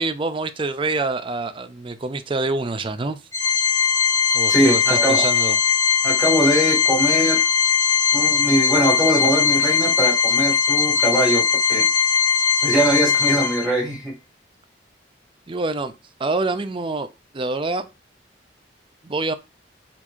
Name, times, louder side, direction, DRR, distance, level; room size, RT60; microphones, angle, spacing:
voice 1, 0.0-3.2 4.3-5.6 15.5-15.9 16.2-17.1 17.3-17.9 19.0-19.3, right 3 dB, 30° right, 0.5 m, -26 dB
Organ, 3.3-13.9, left 6 dB, 15° left, 1.1 m, -19 dB
voice 2, 4.5-5.3 6.0-7.4 8.1-11.4 11.7-11.8 12.6-14.1, right 1 dB, 5° right, 2.3 m, -21 dB
4.4 x 4.4 x 2.7 m
head